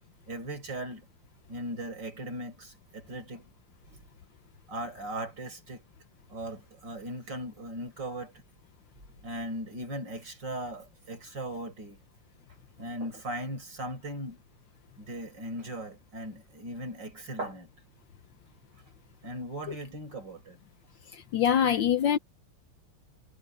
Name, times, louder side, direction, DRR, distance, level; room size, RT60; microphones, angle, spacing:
voice 1, 0.3-1.1 1.5-3.4 3.9-4.0 4.7-5.8 6.3-8.3 9.2-12.0 12.8-14.4 15.0-17.7 19.2-20.6, right 1 dB, 55° right, 6.6 m, -38 dB
voice 2, 21.3-22.2, left 9 dB, 65° left, 1.4 m, -23 dB
omnidirectional pair, 2.4 m